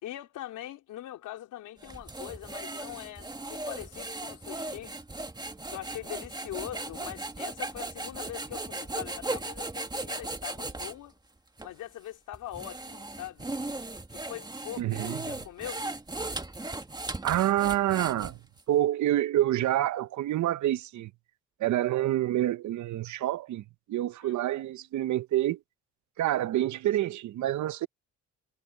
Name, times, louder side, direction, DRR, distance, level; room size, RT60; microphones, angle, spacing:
voice 1, 0.0-5.0 5.7-11.1 11.6-13.5 14.1-15.9 24.2-24.4, left 13 dB, 85° left, 3.8 m, -42 dB
sound 1, 1.8-11.0 11.6-11.7 12.3-18.6, right 2 dB, 15° right, 1.8 m, -37 dB
voice 2, 14.8-15.2 17.2-18.4 18.7-21.1 21.6-25.6 26.2-27.9, right 13 dB, 70° right, 0.8 m, -27 dB
cardioid pair, 90°, 30 cm